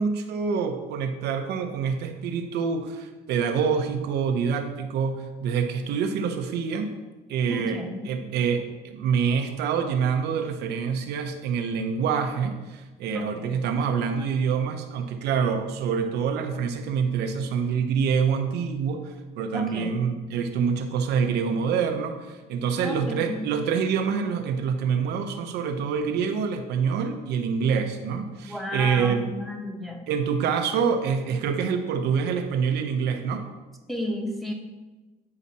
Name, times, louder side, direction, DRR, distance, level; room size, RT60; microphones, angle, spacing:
voice 1, 0.0-6.9 7.3-7.8 8.1-29.3 30.1-33.4, right 6 dB, 80° right, 6 dB, 0.9 m, -26 dB
voice 2, 7.5-8.1 13.1-13.5 19.5-20.0 22.8-23.5 28.4-30.0 33.9-34.5, left 1 dB, ahead, 0 dB, 1.3 m, -32 dB
9.8 x 4.9 x 4.2 m, 1.2 s
cardioid pair, 110°, 17 cm